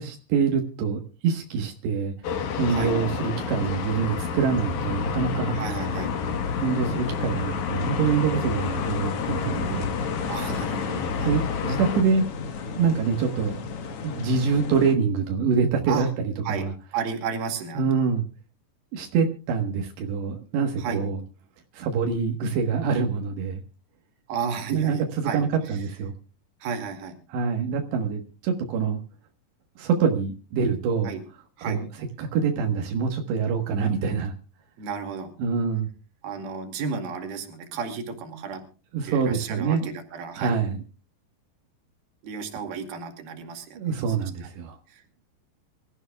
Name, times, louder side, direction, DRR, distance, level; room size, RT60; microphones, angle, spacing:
voice 1, 0.0-2.2 2.6-5.6 6.6-10.0 11.2-12.3 12.7-13.6 14.0-16.1 16.5-16.7 17.8-18.3 18.9-21.2 21.7-23.6 24.7-26.1 27.3-29.0 29.8-31.1 31.6-31.9 32.2-34.3 35.4-35.9 38.9-39.9 40.4-40.8 43.8-44.8, right 5 dB, 80° right, 2 dB, 3.6 m, -25 dB
sound 1, 2.2-12.0, left 6 dB, 60° left, 2.1 m, -29 dB
voice 2, 5.5-6.1 10.3-11.3 15.9-16.1 16.4-16.7 16.9-18.0 20.8-21.0 24.3-25.8 26.6-27.2 31.0-31.2 31.6-31.8 33.8-34.2 34.8-35.3 36.2-38.6 39.0-40.6 42.2-43.8 44.4-44.5 44.9-45.3, right 6 dB, 65° right, 5 dB, 4.0 m, -33 dB
sound 2, 5.8-14.9, left 5 dB, 80° left, 1.3 m, -35 dB
26.0 x 14.0 x 2.3 m, 0.34 s
omnidirectional pair, 4.9 m